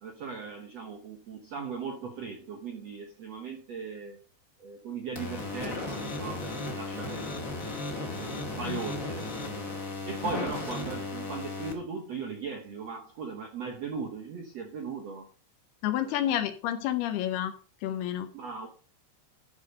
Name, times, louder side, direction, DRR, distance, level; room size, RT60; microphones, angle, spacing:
voice 1, 0.0-4.2 4.6-7.5 8.2-9.3 10.0-15.3 15.8-16.4 18.3-18.7, right 5 dB, 90° right, 3 dB, 1.4 m, -38 dB
sound 1, 5.2-11.7, left 2 dB, 30° left, 1.4 m, -35 dB
voice 2, 15.8-17.5 17.8-18.3, left 11 dB, 75° left, 10 dB, 2.6 m, -29 dB
12.5 x 4.9 x 6.7 m, 0.39 s
omnidirectional pair, 5.2 m